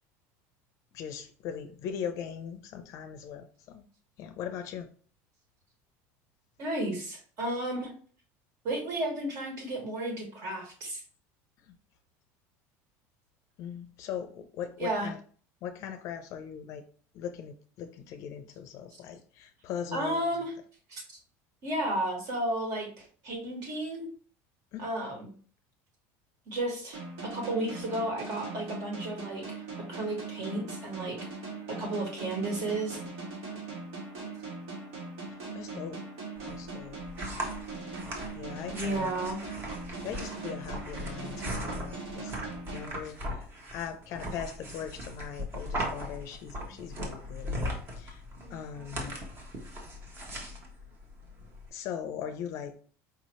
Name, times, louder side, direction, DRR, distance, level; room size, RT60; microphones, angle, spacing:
voice 1, 0.9-3.8 4.2-4.9 11.7-11.8 13.6-15.2 15.6-16.8 17.1-20.3 24.7-24.9 35.3-36.0 36.5-37.0 38.3-39.1 40.0-42.4 42.7-48.2 48.5-49.2 51.7-52.8, left 8 dB, 50° left, 0.5 m, -40 dB
voice 2, 6.6-7.9 8.6-11.0 14.8-15.1 19.9-20.5 20.9-21.0 21.6-24.1 24.8-25.3 26.5-31.2 31.7-33.0 38.7-39.4, right 1 dB, 50° right, 1.7 m, -33 dB
sound 1, 26.9-43.5, right 3 dB, 85° right, 2.1 m, -41 dB
sound 2, 36.4-51.7, equal, 35° right, 1.1 m, -39 dB
4.8 x 2.8 x 3.0 m
cardioid pair, 155°, 7 cm